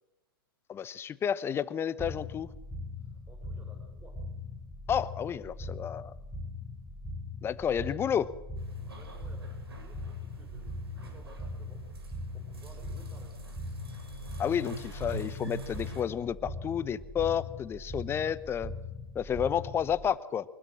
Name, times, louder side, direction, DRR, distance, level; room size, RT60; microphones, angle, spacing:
voice 1, 0.7-2.5 4.9-6.1 7.4-8.3 14.4-18.7 19.1-20.4, left 8 dB, 20° left, 17 dB, 0.9 m, -31 dB
sound 1, 2.0-20.1, left 2 dB, 5° left, 3.3 m, -41 dB
voice 2, 3.0-4.2 8.8-11.8 12.3-13.4, right 2 dB, 15° right, 3 dB, 5.0 m, -56 dB
sound 2, 8.6-16.0, right 3 dB, 80° right, 6.7 m, -44 dB
24.5 x 20.0 x 6.4 m, 1.1 s
hypercardioid pair, 115°, 13 cm